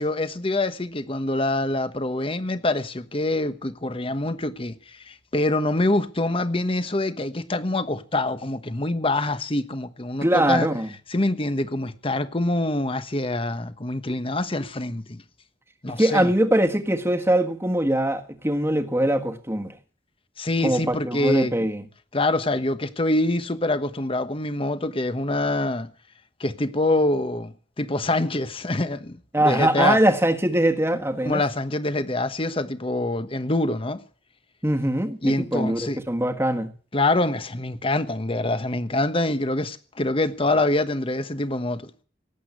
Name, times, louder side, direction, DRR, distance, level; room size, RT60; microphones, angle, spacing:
voice 1, 0.0-4.8 5.1-10.7 11.1-15.2 15.8-16.3 20.4-21.6 22.1-25.9 26.4-30.0 31.2-34.0 35.2-36.0 36.9-41.9, left 2 dB, 30° left, 1.2 m, -25 dB
voice 2, 10.2-10.9 15.9-19.7 20.6-21.8 29.3-31.4 34.6-36.7, right 1 dB, 15° right, 1.6 m, -22 dB
18.0 x 8.4 x 9.5 m
head